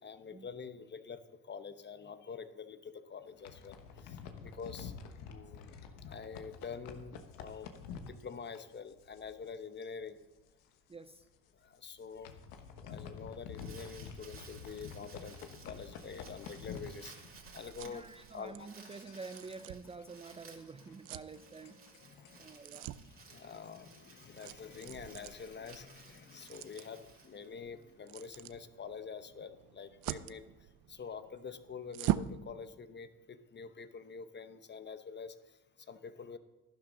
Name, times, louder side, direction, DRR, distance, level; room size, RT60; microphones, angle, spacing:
voice 1, 0.0-4.9 5.3-7.7 8.0-10.2 11.5-12.3 12.8-17.2 17.5-18.7 22.0-22.6 23.0-30.4 30.9-36.4, left 5 dB, 30° left, 11 dB, 0.9 m, -47 dB
sound 1, 3.2-9.6 9.8-10.1 10.4-10.5 11.0-11.2 11.8-17.6 17.9-22.5, left 6 dB, 90° left, 1.2 m, -49 dB
voice 2, 4.4-4.7 10.9-11.3 17.9-21.8 22.4-22.9, right 4 dB, 15° right, 9 dB, 0.4 m, -48 dB
Crumpling crinkling, 13.5-27.9, right 4 dB, 40° right, 2.6 m, -58 dB
sound 2, 16.1-32.4, right 13 dB, 70° right, 0.6 m, -44 dB
12.0 x 11.0 x 3.8 m, 1.2 s
supercardioid pair, 85°, 35 cm